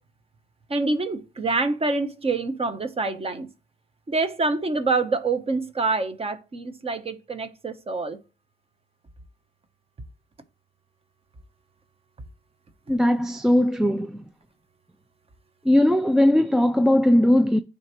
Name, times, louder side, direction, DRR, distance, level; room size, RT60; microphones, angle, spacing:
voice 1, 0.7-3.5 4.1-8.2, right 3 dB, 30° right, 0.9 m, -26 dB
voice 2, 12.9-14.2 15.6-17.6, left 1 dB, 5° right, 0.3 m, -19 dB
10.0 x 3.4 x 3.0 m
cardioid pair, 90°, 20 cm